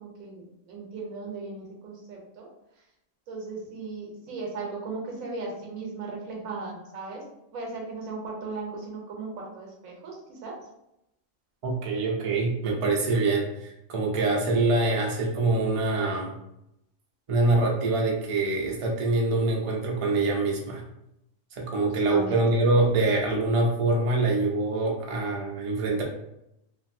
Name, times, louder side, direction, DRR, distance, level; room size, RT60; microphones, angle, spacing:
voice 1, 0.0-2.5 3.3-7.2 7.5-10.5 21.8-22.4, right 3 dB, 85° right, -1 dB, 1.2 m, -37 dB
voice 2, 11.6-16.3 17.3-20.8 21.5-26.0, right 2 dB, 45° right, -1 dB, 0.4 m, -25 dB
2.9 x 2.6 x 2.6 m, 0.84 s
omnidirectional pair, 1.4 m